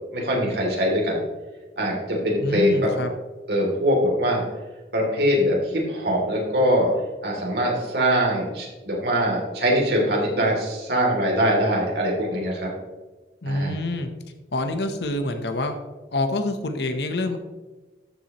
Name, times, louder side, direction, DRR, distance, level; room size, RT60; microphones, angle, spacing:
voice 1, 0.1-1.2 1.8-2.8 3.5-4.4 4.9-6.9 7.2-12.7 13.4-13.8, equal, 70° right, -2 dB, 3.1 m, -22 dB
voice 2, 2.4-3.1 13.4-14.1 14.5-15.8 16.1-17.4, left 2 dB, 75° left, 7 dB, 1.0 m, -26 dB
13.5 x 7.3 x 3.1 m, 1.2 s
head